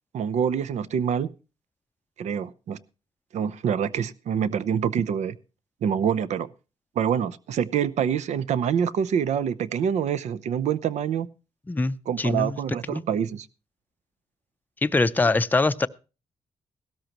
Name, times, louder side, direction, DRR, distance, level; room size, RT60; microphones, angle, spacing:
voice 1, 0.1-1.3 2.2-2.8 3.3-5.3 5.8-6.5 7.0-11.3 12.1-13.5, right 8 dB, 75° right, 15 dB, 0.7 m, -26 dB
voice 2, 11.7-12.6 12.9-13.0 14.8-15.9, left 3 dB, 15° left, 11 dB, 0.5 m, -23 dB
16.5 x 13.0 x 3.0 m, 0.33 s
cardioid pair, 120°, 12 cm